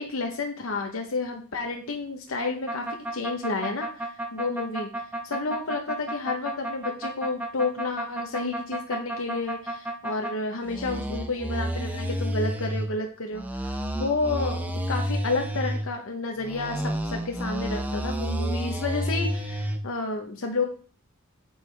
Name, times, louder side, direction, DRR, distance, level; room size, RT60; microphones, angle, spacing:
voice 1, 0.0-4.9 5.2-20.6, left 3 dB, 75° left, 2 dB, 0.9 m, -31 dB
sound 1, 2.7-10.3 10.7-12.9 13.3-15.9 16.4-19.8, right 1 dB, 10° right, 0.7 m, -30 dB
8.9 x 4.7 x 3.3 m, 0.40 s
head